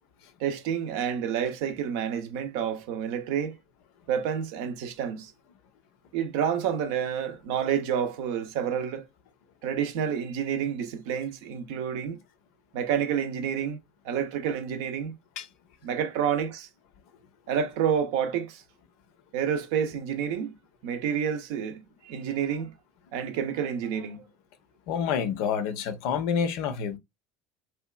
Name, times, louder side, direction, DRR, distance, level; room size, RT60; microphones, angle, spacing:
voice 1, 0.4-3.6 4.1-5.3 6.1-9.0 9.6-12.2 12.7-13.8 14.0-15.1 15.8-16.7 17.5-18.6 19.3-20.5 20.8-22.7 23.1-24.2, right 8 dB, 65° right, 0.5 m, -29 dB
voice 2, 24.9-27.0, left 7 dB, 65° left, 0.5 m, -28 dB
2.8 x 2.2 x 2.3 m
hypercardioid pair, 75°, 0 cm